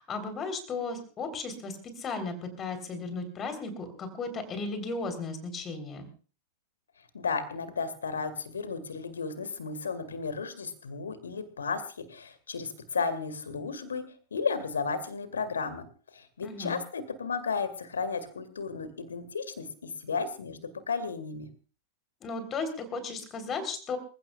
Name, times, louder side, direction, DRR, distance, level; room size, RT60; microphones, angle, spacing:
voice 1, 0.0-6.1 16.4-16.8 22.2-24.0, left 3 dB, 25° left, 8 dB, 3.8 m, -35 dB
voice 2, 7.1-11.8 12.1-14.0 14.3-15.8 16.1-21.5, left 5 dB, 70° left, 12 dB, 2.2 m, -33 dB
27.0 x 15.5 x 2.4 m, 0.38 s
figure-of-eight pair, 90°, 0 cm